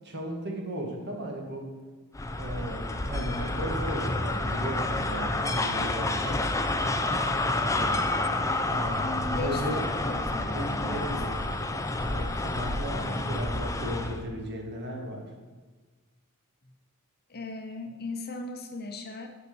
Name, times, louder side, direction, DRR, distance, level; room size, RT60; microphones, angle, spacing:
voice 1, 0.0-1.7 2.4-6.4 8.7-9.7 10.5-11.4 12.0-15.3, right 1 dB, 50° right, 2 dB, 1.7 m, -36 dB
sound 1, 2.1-14.2, left 2 dB, 15° left, 0.5 m, -29 dB
voice 2, 7.7-8.0 9.3-11.2 17.3-19.3, left 3 dB, 45° left, 5 dB, 1.0 m, -38 dB
6.9 x 6.0 x 6.8 m, 1.3 s
head